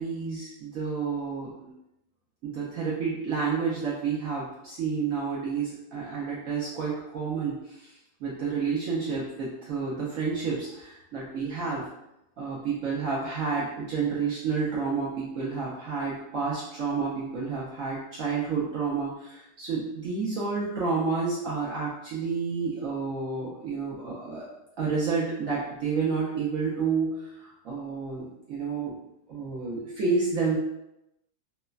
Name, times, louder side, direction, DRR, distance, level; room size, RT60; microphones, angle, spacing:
voice 1, 0.0-1.7 2.4-7.6 8.2-11.9 12.4-24.4 24.8-28.9 29.3-30.6, right 5 dB, 70° right, -6 dB, 0.7 m, -30 dB
3.2 x 2.1 x 2.3 m, 0.86 s
omnidirectional pair, 2.0 m